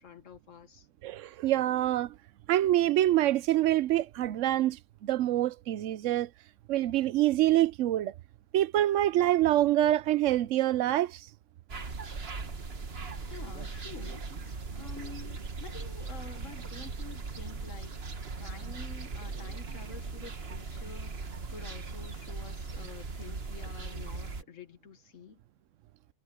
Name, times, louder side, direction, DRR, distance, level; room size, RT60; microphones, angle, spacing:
voice 1, 0.0-0.9 13.3-25.4, left 5 dB, 85° left, 1.7 m, -49 dB
voice 2, 1.0-2.1 2.5-6.3 6.7-8.1 8.5-11.2, right 13 dB, 80° right, 0.9 m, -26 dB
sound 1, 11.7-24.4, right 4 dB, 55° right, 1.6 m, -39 dB
omnidirectional pair, 1.3 m